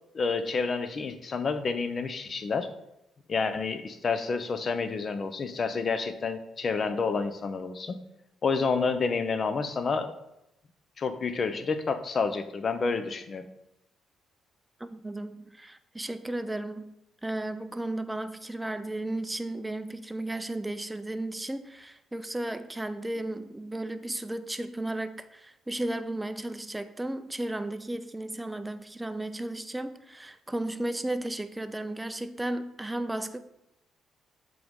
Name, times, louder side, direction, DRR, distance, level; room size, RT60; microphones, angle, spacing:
voice 1, 0.1-2.7 3.3-8.0 8.4-10.1 11.0-13.5, left 4 dB, 45° left, 0.6 m, -29 dB
voice 2, 14.8-16.9 17.2-33.4, right 1 dB, 10° right, 0.4 m, -34 dB
7.6 x 3.9 x 3.6 m
cardioid pair, 90°, 0 cm